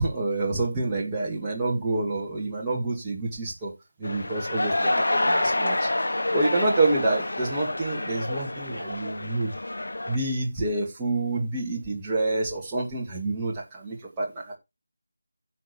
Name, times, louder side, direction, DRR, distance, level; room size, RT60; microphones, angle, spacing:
voice 1, 0.0-3.7 4.0-5.9 6.3-9.5 10.1-14.6, right 2 dB, 10° right, 2.0 m, -27 dB
sound 1, 4.0-10.2, left 1 dB, 80° left, 2.1 m, -27 dB
10.5 x 6.4 x 4.5 m
figure-of-eight pair, 170°, 0 cm